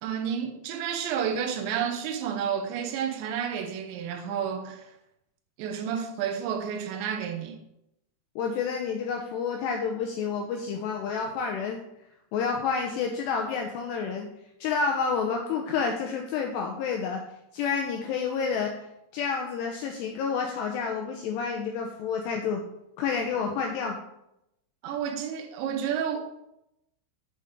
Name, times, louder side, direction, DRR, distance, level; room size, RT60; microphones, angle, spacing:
voice 1, 0.0-4.9 5.6-7.6 24.8-26.5, right 8 dB, 75° right, 3.0 m, -31 dB
voice 2, 8.4-11.8 12.3-14.3 14.6-17.2 17.5-18.7 19.1-22.6 23.0-24.0, left 5 dB, 90° left, 2.4 m, -29 dB
8.4 x 7.9 x 3.6 m
omnidirectional pair, 5.7 m